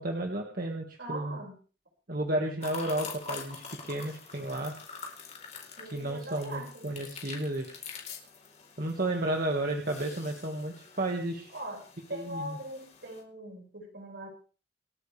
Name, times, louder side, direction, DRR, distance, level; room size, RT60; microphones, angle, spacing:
voice 1, 0.0-1.4 2.1-4.7 5.9-7.8 8.8-11.5 12.1-12.6, right 1 dB, 55° right, 2 dB, 2.1 m, -32 dB
voice 2, 1.0-1.5 5.8-6.9 11.5-14.3, right 1 dB, 70° right, 1 dB, 6.1 m, -41 dB
sound 1, 2.6-13.2, left 5 dB, 40° left, 4.3 m, -46 dB
27.5 x 9.4 x 3.5 m, 0.38 s
head